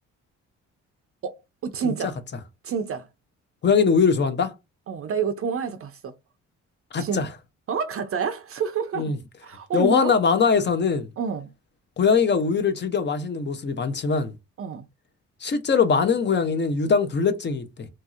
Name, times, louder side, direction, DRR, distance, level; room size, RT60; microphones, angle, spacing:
voice 1, 1.2-2.1 2.6-3.1 4.9-6.1 7.0-7.2 7.7-9.1 9.4-10.1 11.2-11.5 14.6-14.8, right 6 dB, 50° right, 0.5 m, -28 dB
voice 2, 3.6-4.5 6.9-7.3 9.0-9.2 9.7-11.1 12.0-14.3 15.4-17.9, left 5 dB, 35° left, 0.6 m, -21 dB
2.9 x 2.6 x 2.4 m
cardioid pair, 90°, 30 cm